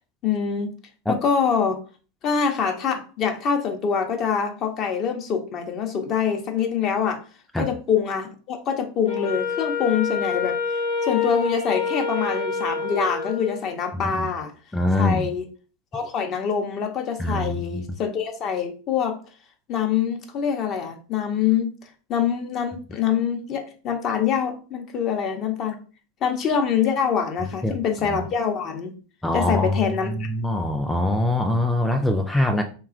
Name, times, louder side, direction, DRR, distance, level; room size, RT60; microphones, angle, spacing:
voice 1, 0.2-0.7 1.1-1.8 2.2-7.2 7.6-10.6 11.0-14.5 15.0-15.4 15.9-19.2 19.7-21.7 22.1-25.8 26.2-28.9 29.3-30.1, left 7 dB, 40° left, 4 dB, 0.6 m, -25 dB
Wind instrument woodwind instrument, 9.1-13.7, left 5 dB, 85° left, 0.7 m, -27 dB
voice 2, 14.7-15.3 17.2-17.9 27.4-27.8 28.1-28.2 29.2-32.6, left 1 dB, 5° left, 3 dB, 0.3 m, -23 dB
2.8 x 2.3 x 2.4 m, 0.38 s
hypercardioid pair, 90°, 0 cm